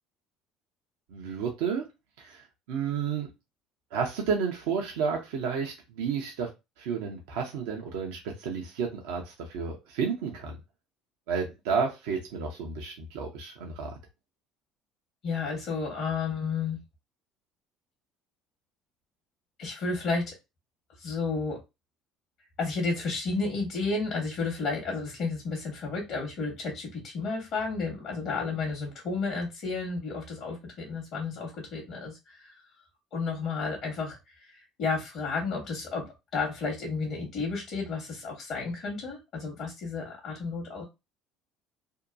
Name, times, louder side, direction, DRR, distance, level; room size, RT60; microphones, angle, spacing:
voice 1, 1.1-1.8 2.2-3.3 3.9-6.5 6.8-10.6 11.3-14.0, right 6 dB, 75° right, 0.6 m, -31 dB
voice 2, 15.2-16.8 19.6-20.3 21.0-21.6 22.6-32.5 33.1-40.8, left 4 dB, 60° left, 1.0 m, -32 dB
2.7 x 2.2 x 2.5 m
hypercardioid pair, 70°, 0 cm